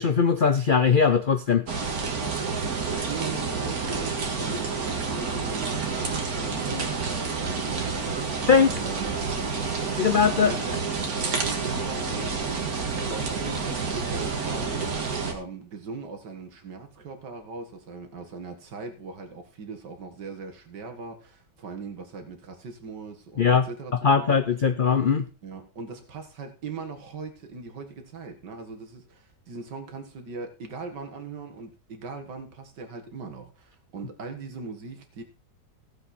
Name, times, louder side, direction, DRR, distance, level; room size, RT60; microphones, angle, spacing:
voice 1, 0.0-1.7 8.5-8.7 10.0-10.5 23.4-23.7 24.0-25.3, left 6 dB, 75° left, 9 dB, 0.4 m, -20 dB
sound 1, 1.7-15.3, right 4 dB, 60° right, 2.1 m, -29 dB
voice 2, 2.7-8.5 8.8-9.2 9.8-10.0 10.4-10.8 11.4-24.4 25.4-35.2, right 4 dB, 80° right, 5 dB, 2.4 m, -40 dB
15.0 x 7.7 x 4.3 m, 0.34 s
omnidirectional pair, 1.8 m